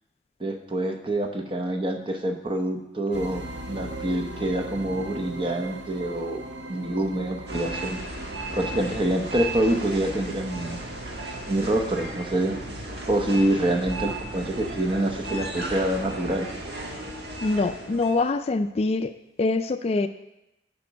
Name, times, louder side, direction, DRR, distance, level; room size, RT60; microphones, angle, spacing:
voice 1, 0.4-6.4 6.7-8.0 8.5-10.8 11.5-12.6 13.1-16.5, right 1 dB, 30° right, 5 dB, 0.9 m, -26 dB
sound 1, 3.1-12.4, right 2 dB, 85° right, 0.8 m, -39 dB
sound 2, 7.5-18.3, right 2 dB, 65° right, 1.6 m, -35 dB
voice 2, 17.4-19.1 19.4-20.1, left 3 dB, 35° left, 10 dB, 0.3 m, -24 dB
12.0 x 5.1 x 5.2 m, 0.91 s
head